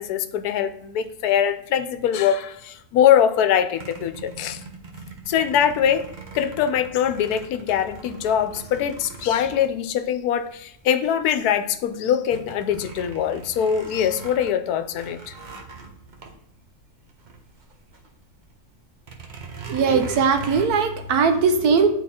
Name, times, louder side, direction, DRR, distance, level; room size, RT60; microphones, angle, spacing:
voice 1, 0.0-4.6 5.3-6.1 6.3-15.3, left 9 dB, 80° left, 10 dB, 1.1 m, -22 dB
sound 1, 3.8-10.4 11.0-11.1 11.4-18.1 18.4-18.5 19.0-20.7, right 4 dB, 40° right, 0.8 m, -41 dB
voice 2, 19.7-21.9, right 5 dB, 80° right, 6 dB, 1.4 m, -19 dB
9.3 x 3.9 x 4.2 m, 0.71 s
omnidirectional pair, 1.6 m